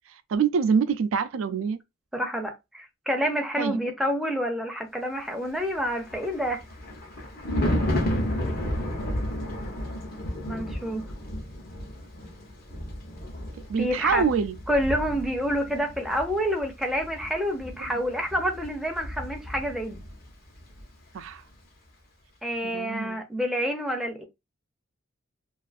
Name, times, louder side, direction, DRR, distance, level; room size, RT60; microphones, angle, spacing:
voice 1, 0.1-1.8 3.6-3.8 13.7-14.6 17.7-18.0 21.1-21.4 22.6-23.2, right 6 dB, 80° right, 0.4 m, -26 dB
voice 2, 2.1-6.6 10.5-11.1 13.8-14.2 14.7-20.0 22.4-24.2, equal, ahead, 0.5 m, -28 dB
Thunder, 5.7-20.3 20.5-20.8, left 1 dB, 50° left, 0.8 m, -32 dB
2.4 x 2.4 x 2.4 m
head